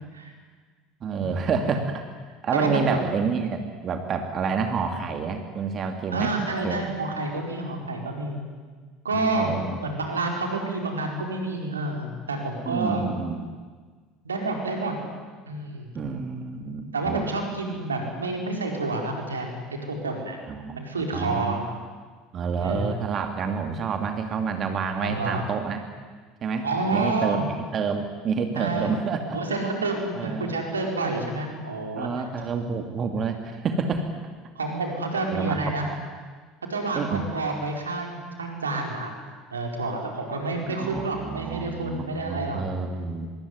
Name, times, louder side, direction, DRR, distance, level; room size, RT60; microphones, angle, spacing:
voice 1, 1.0-2.1 2.4-6.8 9.1-9.7 12.6-13.5 15.9-17.3 20.5-21.6 22.3-25.8 26.4-26.7 26.9-27.4 27.7-29.4 30.1-30.5 32.0-34.1 35.3-35.6 35.9-36.0 37.0-37.3 40.6-43.3, right 5 dB, 40° right, 6 dB, 2.7 m, -28 dB
voice 2, 2.5-3.0 6.1-8.4 9.0-13.1 14.2-14.9 15.5-15.9 16.9-20.4 20.7-21.6 22.6-23.0 25.0-25.4 26.6-27.4 28.5-28.9 29.3-32.2 34.5-35.9 36.7-39.1 39.5-42.6, right 2 dB, 85° right, 2 dB, 4.7 m, -29 dB
24.5 x 23.0 x 9.7 m, 1.5 s
figure-of-eight pair, 70°, 0 cm